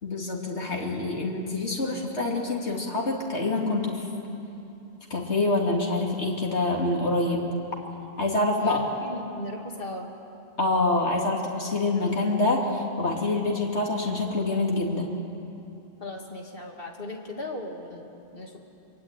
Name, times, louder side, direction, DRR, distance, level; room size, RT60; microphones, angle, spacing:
voice 1, 0.0-4.0 5.1-7.4 8.2-8.8 10.6-15.1, left 2 dB, 85° left, -1 dB, 3.2 m, -26 dB
voice 2, 8.6-10.1 16.0-18.6, left 2 dB, 55° left, 1 dB, 2.9 m, -37 dB
25.5 x 23.0 x 9.2 m, 2.8 s
omnidirectional pair, 1.1 m